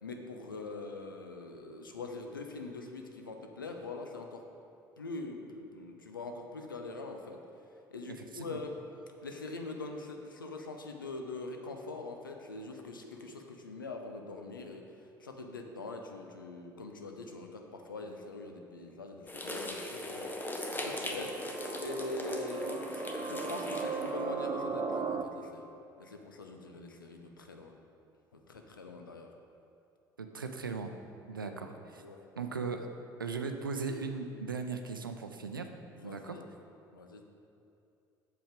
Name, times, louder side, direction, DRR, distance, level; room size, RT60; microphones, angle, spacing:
voice 1, 0.0-4.4 5.0-7.4 7.9-8.8 9.2-14.9 15.2-20.3 20.7-21.4 21.8-25.7 26.0-27.8 28.5-29.3 31.3-31.5 32.0-32.2 36.0-36.4 36.9-37.2, left 3 dB, 80° left, 4 dB, 0.7 m, -43 dB
voice 2, 8.1-8.6 30.2-31.0 31.3-32.0 32.4-32.9 33.2-35.7 36.0-36.4, right 4 dB, 85° right, 6 dB, 0.5 m, -38 dB
sound 1, 19.3-24.2, left 1 dB, 15° left, 1.0 m, -39 dB
sound 2, 20.2-25.2, right 5 dB, 30° right, 0.6 m, -38 dB
7.7 x 7.0 x 5.0 m, 2.6 s
figure-of-eight pair, 60°, 11 cm